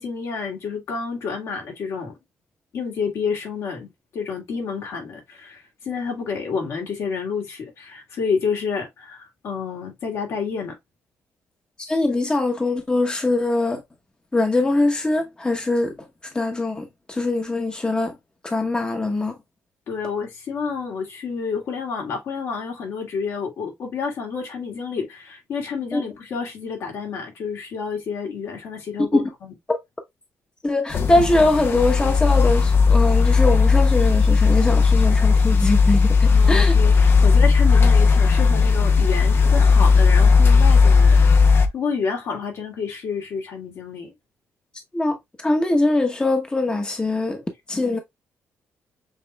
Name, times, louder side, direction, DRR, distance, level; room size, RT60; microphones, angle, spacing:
voice 1, 0.0-2.2 2.7-10.7 19.9-29.5 36.3-44.1, left 5 dB, 70° left, 2.3 m, -29 dB
voice 2, 11.8-13.8 14.3-15.9 16.3-18.2 18.4-19.4 25.9-26.0 29.1-29.3 29.7-29.8 30.6-36.7 44.9-47.4 47.7-48.0, left 2 dB, 20° left, 1.0 m, -22 dB
sound 1, 30.9-41.7, left 4 dB, 50° left, 0.7 m, -16 dB
7.2 x 3.0 x 2.3 m
cardioid pair, 95°, 5 cm